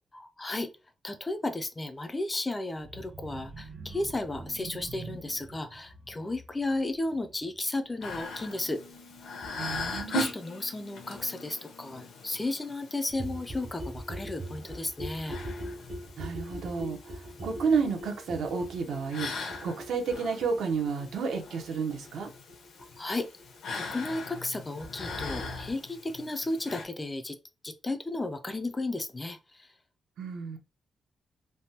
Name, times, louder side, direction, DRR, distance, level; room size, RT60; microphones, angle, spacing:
voice 1, 0.1-0.7 1.0-8.8 10.1-15.4 23.0-23.3 23.7-27.4 27.6-29.7, left 2 dB, 15° left, 0.3 m, -34 dB
sound 1, 2.8-8.5 8.9-9.2 9.5-9.6, right 3 dB, 50° right, 1.0 m, -46 dB
sound 2, 8.0-26.8, left 2 dB, 75° left, 0.8 m, -40 dB
voice 2, 9.6-10.3 16.2-22.3 30.2-30.6, right 5 dB, 80° right, 0.8 m, -31 dB
sound 3, 13.1-24.6 24.9-25.0 25.2-25.3 25.5-25.6 25.8-25.9 26.1-26.2 26.4-26.5, equal, 35° right, 0.6 m, -41 dB
3.3 x 2.1 x 2.8 m
wide cardioid pair, 165°, 0 cm